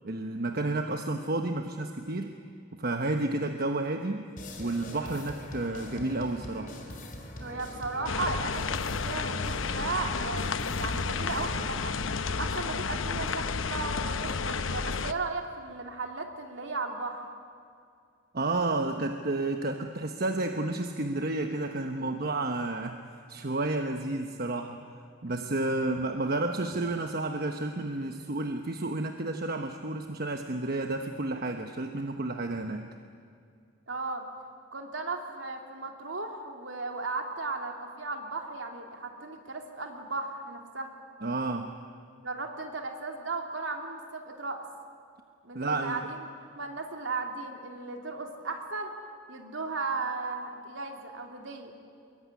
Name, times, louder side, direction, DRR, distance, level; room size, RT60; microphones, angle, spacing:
voice 1, 0.0-2.4 2.7-4.3 4.6-6.7 18.3-23.0 23.3-24.8 25.2-32.9 41.2-41.7 45.5-46.0, right 2 dB, 50° right, 5 dB, 1.1 m, -31 dB
sound 1, 4.4-11.8, left 1 dB, 45° left, 4.0 m, -43 dB
voice 2, 7.4-12.0 12.4-17.3 33.9-34.2 34.7-40.9 42.2-44.6 45.4-46.2 46.6-49.0 49.3-51.7, right 3 dB, 70° right, 3 dB, 3.1 m, -36 dB
sound 2, 8.1-15.1, left 4 dB, 85° left, 0.8 m, -31 dB
24.0 x 22.5 x 9.8 m, 2.3 s
head